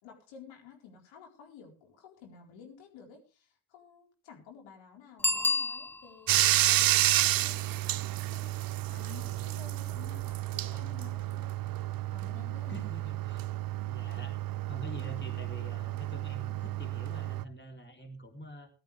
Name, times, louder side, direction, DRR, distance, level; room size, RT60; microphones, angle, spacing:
voice 1, 0.0-11.5 12.1-12.9, left 7 dB, 70° left, 1 dB, 4.4 m, -52 dB
Bicycle bell, 5.2-6.4 11.8-11.9, left 3 dB, 5° left, 0.7 m, -30 dB
Bathtub (filling or washing), 6.3-17.4, right 14 dB, 45° right, 0.7 m, -30 dB
voice 2, 12.7-13.5 13.9-18.7, right 1 dB, 25° left, 5 dB, 3.4 m, -46 dB
18.0 x 13.0 x 3.4 m, 0.33 s
hypercardioid pair, 50°, 48 cm